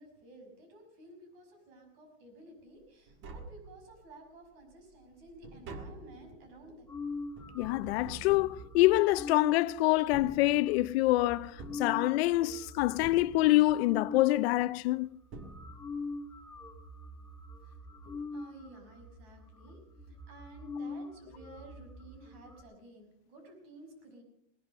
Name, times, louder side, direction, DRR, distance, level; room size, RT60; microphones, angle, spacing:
voice 1, 0.0-6.9 17.6-17.8 18.0-19.8 20.1-24.2, right 1 dB, 55° right, 6.0 m, -53 dB
Tap, 2.8-2.9 3.1-4.2 4.6-9.4 10.0-11.0 11.6-12.6 13.0-13.9 14.9-15.0 15.3-16.1 16.4-16.5, right 2 dB, 35° right, 1.6 m, -49 dB
sound 1, 6.9-14.3 14.9-15.0 15.3-22.6, left 3 dB, 5° left, 1.6 m, -44 dB
voice 2, 7.5-15.1, left 17 dB, 60° left, 0.6 m, -26 dB
19.0 x 11.0 x 5.4 m
supercardioid pair, 160°, 36 cm